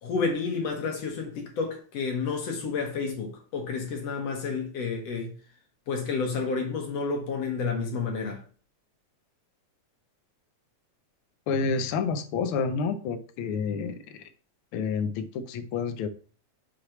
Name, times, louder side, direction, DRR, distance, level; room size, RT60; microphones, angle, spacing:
voice 1, 0.0-5.3 5.9-8.4, left 4 dB, 65° left, 2.2 m, -30 dB
voice 2, 11.5-14.2 14.7-16.1, left 5 dB, 90° left, 1.1 m, -29 dB
6.4 x 3.2 x 5.7 m
omnidirectional pair, 3.3 m